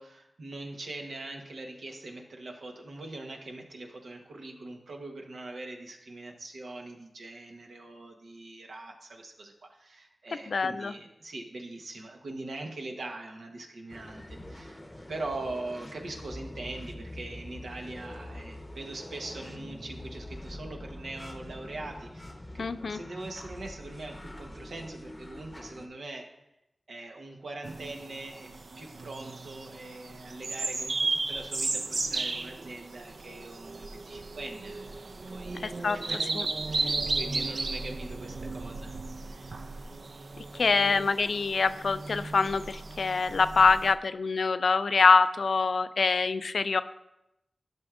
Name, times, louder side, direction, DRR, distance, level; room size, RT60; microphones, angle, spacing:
voice 1, 0.0-14.8 15.1-26.3 26.9-34.9 35.3-36.2 36.7-38.9 39.2-39.5, right 2 dB, 90° right, 2 dB, 1.0 m, -42 dB
voice 2, 10.5-10.9 22.6-23.0 35.6-36.0 36.3-36.5 40.5-46.8, left 4 dB, 80° left, 12 dB, 0.3 m, -25 dB
sound 1, 13.9-25.9, left 1 dB, 25° left, 0.7 m, -44 dB
sound 2, 27.6-43.9, right 3 dB, 70° right, 0.4 m, -35 dB
12.0 x 6.1 x 2.4 m, 0.87 s
cardioid pair, 55°, 0 cm